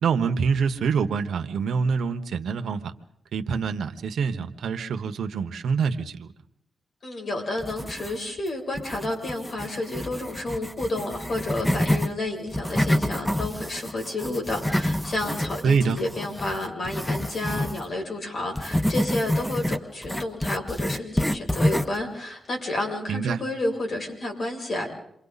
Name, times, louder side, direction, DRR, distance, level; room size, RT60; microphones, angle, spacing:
voice 1, 0.0-2.9 3.3-6.3 15.6-16.0 23.1-23.4, right 5 dB, 85° right, 7 dB, 1.2 m, -25 dB
voice 2, 7.0-24.9, left 2 dB, 55° left, 1 dB, 7.2 m, -30 dB
sound 1, 7.6-8.4 8.7-12.1 12.5-17.8 18.5-22.0, left 1 dB, 5° left, 0.7 m, -27 dB
28.5 x 25.0 x 4.1 m, 0.74 s
cardioid pair, 105°, 0 cm